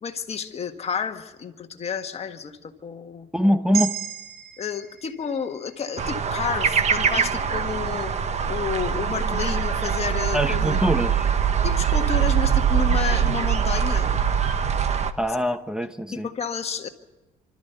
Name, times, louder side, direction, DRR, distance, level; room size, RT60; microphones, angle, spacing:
voice 1, 0.0-3.3 4.6-10.8 11.6-14.1 16.1-16.9, left 6 dB, 35° left, 5 dB, 1.7 m, -31 dB
voice 2, 3.3-4.0 10.3-11.3 15.2-16.3, equal, 5° right, 6 dB, 0.8 m, -23 dB
sound 1, 3.7-8.0, right 10 dB, 65° right, 1.8 m, -36 dB
sound 2, 6.0-15.1, right 7 dB, 40° right, 1.1 m, -23 dB
26.0 x 13.5 x 8.2 m, 1.1 s
cardioid pair, 110°, 17 cm